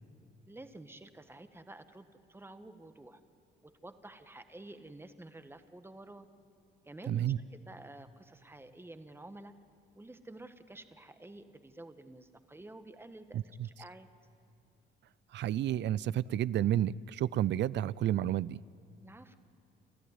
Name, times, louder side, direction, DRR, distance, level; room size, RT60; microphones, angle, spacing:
voice 1, 0.5-3.2 3.6-6.3 6.8-7.2 7.5-9.5 9.9-14.1 19.0-19.3, right 2 dB, 10° right, 9 dB, 1.4 m, -50 dB
voice 2, 7.1-7.4 13.3-13.7 15.3-18.6, right 12 dB, 65° right, 21 dB, 0.5 m, -31 dB
29.0 x 13.5 x 9.7 m, 2.5 s
cardioid pair, 90°, 20 cm